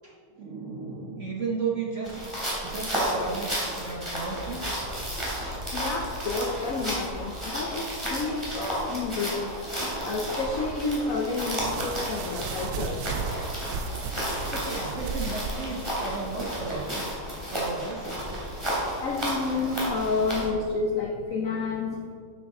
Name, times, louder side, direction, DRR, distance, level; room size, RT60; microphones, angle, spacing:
voice 1, 0.0-4.8 14.5-17.1 17.5-18.2, right 4 dB, 50° right, -2 dB, 0.9 m, -34 dB
sound 1, 2.0-20.5, equal, 15° right, 2.9 m, -32 dB
voice 2, 5.7-9.6 10.0-13.0 19.0-22.1, left 3 dB, 70° left, 1 dB, 0.8 m, -30 dB
sound 2, 11.4-16.2, right 5 dB, 85° right, 1.6 m, -35 dB
12.0 x 8.0 x 3.7 m, 2.2 s
omnidirectional pair, 2.4 m